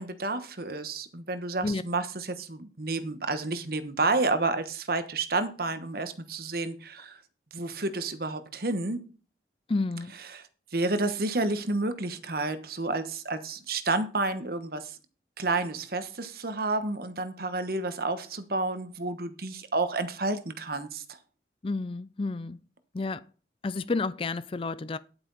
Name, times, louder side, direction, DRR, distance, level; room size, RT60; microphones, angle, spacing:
voice 1, 0.0-7.2 7.5-9.1 10.3-15.0 15.4-21.2, right 3 dB, 55° right, 1.2 m, -30 dB
voice 2, 9.7-10.1 21.6-22.6 22.9-23.2 23.6-25.0, left 3 dB, 30° left, 0.4 m, -30 dB
10.0 x 8.7 x 4.1 m
head